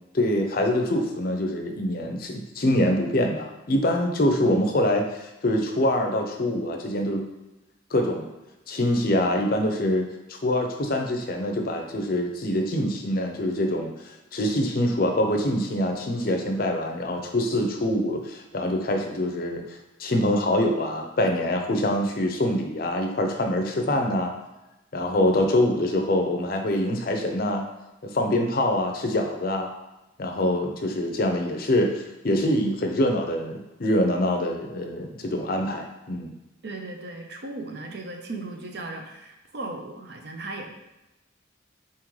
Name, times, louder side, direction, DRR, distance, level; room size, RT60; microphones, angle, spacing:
voice 1, 0.1-7.3 7.9-8.3 8.7-24.3 24.9-27.7 28.0-29.7 30.2-36.3, left 1 dB, 50° left, 3 dB, 0.5 m, -25 dB
voice 2, 36.6-40.7, right 2 dB, 55° right, 3 dB, 0.6 m, -36 dB
4.2 x 3.7 x 3.1 m, 0.98 s
head